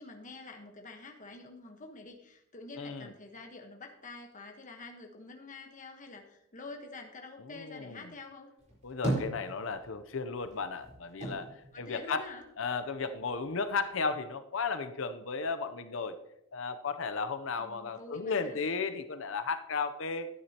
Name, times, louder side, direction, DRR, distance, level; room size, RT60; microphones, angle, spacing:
voice 1, 0.0-8.5 11.7-12.4 13.0-13.1 17.6-18.6, left 3 dB, 40° left, 3 dB, 1.2 m, -47 dB
voice 2, 2.8-3.1 7.4-8.1 8.8-12.2 12.6-16.2 16.5-20.3, left 4 dB, 70° left, 10 dB, 0.7 m, -34 dB
sound 1, 8.6-10.1 10.4-12.8 13.1-14.0, right 1 dB, 35° right, 4.2 m, -37 dB
12.5 x 9.8 x 2.9 m, 0.82 s
head